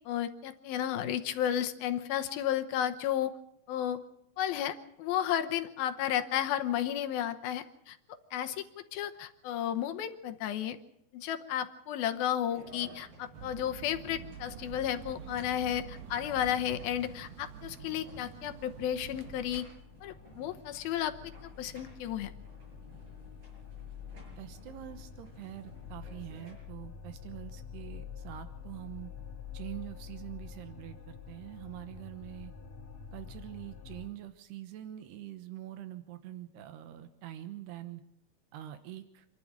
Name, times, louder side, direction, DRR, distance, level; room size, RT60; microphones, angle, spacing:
voice 1, 0.1-3.3 3.7-4.0 4.4-8.0 8.3-8.6 8.9-10.8 11.1-19.7 20.0-21.1 21.4-22.3, left 10 dB, 75° left, 7 dB, 2.6 m, -33 dB
sound 1, 12.5-26.5, right 2 dB, 30° right, 7.2 m, -55 dB
sound 2, 13.3-19.6, right 9 dB, 60° right, 2.9 m, -47 dB
sound 3, 17.8-34.1, left 7 dB, 55° left, 2.3 m, -48 dB
voice 2, 24.4-29.1 29.5-32.5 33.1-38.0 38.5-39.3, right 13 dB, 85° right, 10 dB, 3.2 m, -45 dB
27.5 x 11.5 x 8.8 m, 0.81 s
omnidirectional pair, 4.6 m